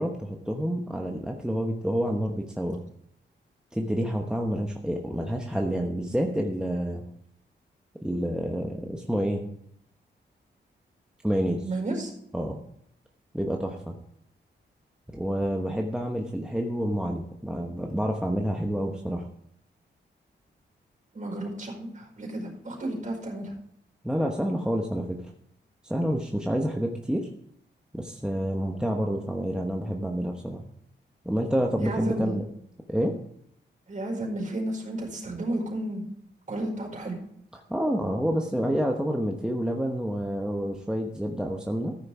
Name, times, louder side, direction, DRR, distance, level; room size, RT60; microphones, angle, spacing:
voice 1, 0.0-2.8 3.7-7.0 8.0-9.5 11.2-11.6 12.3-12.6 13.3-14.0 15.1-19.3 24.0-25.2 25.8-27.3 27.9-30.6 31.2-32.4 32.9-33.1 37.7-42.0, equal, 5° right, 1 dB, 1.1 m, -28 dB
voice 2, 11.6-12.1 21.1-23.5 31.8-32.4 33.9-36.0 36.5-37.2, right 1 dB, 40° right, 0 dB, 4.9 m, -32 dB
14.0 x 6.4 x 4.9 m, 0.70 s
cardioid pair, 90°, 19 cm